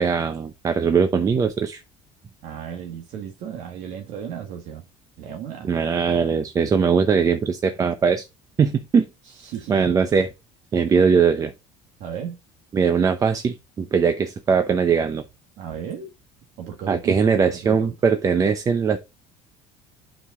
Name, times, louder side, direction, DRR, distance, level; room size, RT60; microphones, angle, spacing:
voice 1, 0.0-1.8 5.6-8.2 8.6-9.1 9.7-10.3 10.7-11.5 12.7-15.2 16.9-19.0, right 6 dB, 25° right, 0.7 m, -20 dB
voice 2, 2.4-4.8 5.2-5.7 9.2-9.9 12.0-12.4 15.6-16.1 16.6-17.9, right 8 dB, 65° right, 1.6 m, -35 dB
8.8 x 4.8 x 3.8 m
cardioid pair, 140°, 13 cm